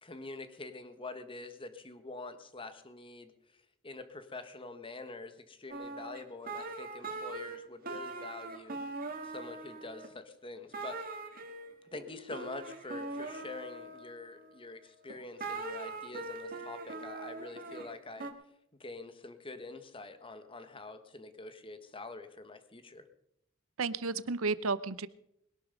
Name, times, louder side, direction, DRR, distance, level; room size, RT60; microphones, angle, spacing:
voice 1, 0.0-8.8 9.2-11.0 11.9-18.3 18.8-23.0, left 3 dB, 25° left, 10 dB, 1.4 m, -46 dB
sound 1, 5.7-7.6 7.8-10.1 10.7-14.6 15.1-18.3, right 3 dB, 45° right, 2.2 m, -42 dB
voice 2, 23.8-25.1, right 4 dB, 80° right, 16 dB, 0.8 m, -32 dB
21.5 x 11.5 x 5.3 m, 0.78 s
head